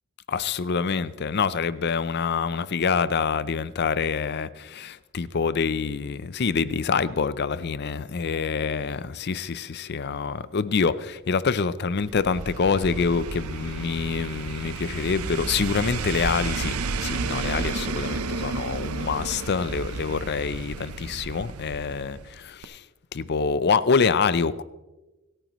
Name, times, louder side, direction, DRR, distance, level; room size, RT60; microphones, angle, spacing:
voice 1, 0.3-22.8 23.1-24.6, left 5 dB, 50° left, 0.5 m, -26 dB
sound 1, 12.0-22.4 22.6-22.7, right 4 dB, 90° right, 0.7 m, -32 dB
27.0 x 9.1 x 3.1 m
head